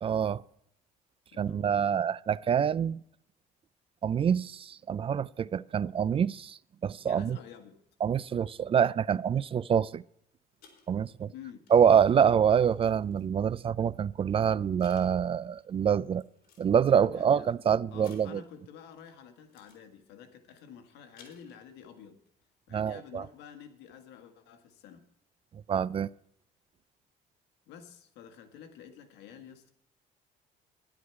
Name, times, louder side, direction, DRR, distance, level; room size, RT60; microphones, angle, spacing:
voice 1, 0.0-0.4 1.4-3.0 4.0-7.4 8.0-10.0 10.9-11.3 11.7-16.2 16.6-18.4 22.7-23.2 25.7-26.1, right 8 dB, 35° right, 0.3 m, -26 dB
voice 2, 1.3-2.0 7.0-7.8 11.3-11.6 16.9-17.5 17.9-22.2 22.7-25.1 27.7-29.7, left 8 dB, 90° left, 1.7 m, -50 dB
sound 1, 10.6-13.4 14.2-14.4 14.8-15.6 16.2-16.8 18.0-19.2 19.5-19.9 20.9-21.9 22.3-22.4, left 5 dB, 70° left, 4.0 m, -60 dB
11.5 x 11.5 x 4.7 m
cardioid pair, 110°, 17 cm